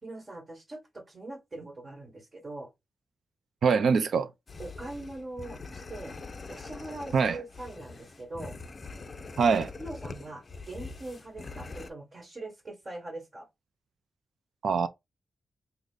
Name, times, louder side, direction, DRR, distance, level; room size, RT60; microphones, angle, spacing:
voice 1, 0.0-2.7 4.6-6.2 6.5-8.6 9.8-13.5, right 2 dB, 35° right, 1.4 m, -42 dB
voice 2, 3.6-4.3 7.1-7.4 9.4-9.7 14.6-14.9, right 5 dB, 75° right, 0.4 m, -23 dB
sound 1, 4.5-11.9, left 3 dB, 40° left, 0.4 m, -43 dB
3.4 x 2.1 x 3.7 m
cardioid pair, 90°, 0 cm